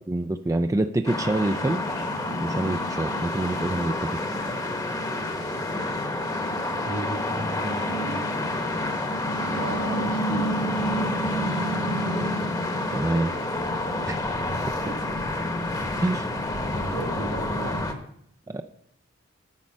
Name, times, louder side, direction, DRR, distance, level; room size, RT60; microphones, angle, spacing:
voice 1, 0.1-1.8 2.4-4.2 12.9-13.3 14.1-14.2 16.0-16.3 18.5-18.6, right 2 dB, 15° right, 7 dB, 0.3 m, -26 dB
sound 1, 1.1-17.9, left 1 dB, 20° left, 1.0 m, -28 dB
sound 2, 1.7-5.7 5.9-6.0 6.5-8.1 8.4-9.0 9.3-10.0, left 2 dB, 85° left, 3.7 m, -46 dB
voice 2, 6.6-8.3 9.4-10.8 12.9-13.4 13.7-13.8 14.8-15.0 16.7-17.8, right 2 dB, 75° right, 2 dB, 2.7 m, -36 dB
9.6 x 5.2 x 7.4 m, 0.71 s
head